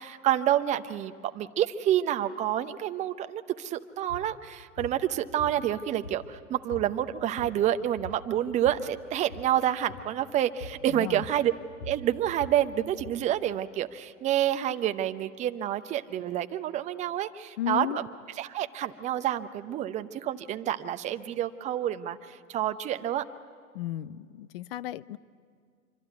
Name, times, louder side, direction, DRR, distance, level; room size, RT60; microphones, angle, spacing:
voice 1, 0.0-11.5 11.9-18.1 18.4-23.2, right 11 dB, 15° right, 10 dB, 0.7 m, -28 dB
sound 1, 4.0-4.3 4.8-5.0 5.4-6.4 6.7-6.9 7.2-7.7 8.0-8.9 9.2-9.5 9.9-10.1 10.6-10.9 11.2-13.2, left 2 dB, 70° left, 3.7 m, -43 dB
voice 2, 10.9-11.2 17.6-18.0 23.7-25.2, left 13 dB, 40° left, 18 dB, 0.7 m, -34 dB
25.5 x 25.0 x 9.3 m, 2.1 s
hypercardioid pair, 120°, 44 cm